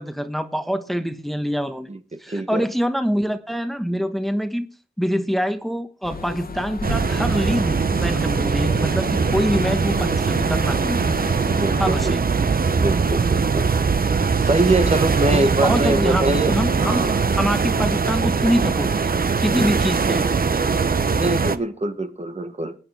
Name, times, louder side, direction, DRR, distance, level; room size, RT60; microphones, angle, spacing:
voice 1, 0.0-1.9 2.2-4.7 5.0-11.0 11.8-12.2 15.3-17.1 17.4-19.1 19.4-20.3, equal, ahead, 1.2 m, -25 dB
voice 2, 1.9-2.7 11.5-12.2 12.8-13.9 14.4-17.3 21.1-22.8, right 2 dB, 35° right, 1.2 m, -24 dB
sound 1, 6.0-12.0, left 5 dB, 50° left, 1.2 m, -34 dB
sound 2, 6.8-21.6, right 5 dB, 50° right, 0.8 m, -21 dB
20.0 x 8.8 x 3.5 m
cardioid pair, 55°, 19 cm